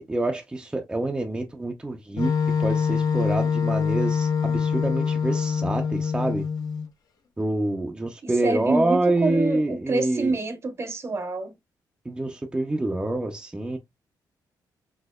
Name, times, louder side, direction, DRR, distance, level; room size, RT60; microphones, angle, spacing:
voice 1, 0.0-2.3 2.6-6.4 7.4-10.3 12.1-13.8, right 2 dB, 10° right, 0.5 m, -26 dB
Wind instrument woodwind instrument, 2.2-6.9, left 6 dB, 55° left, 0.8 m, -24 dB
voice 2, 8.2-11.5, right 3 dB, 35° right, 0.8 m, -27 dB
4.2 x 2.6 x 2.2 m
cardioid pair, 105°, 8 cm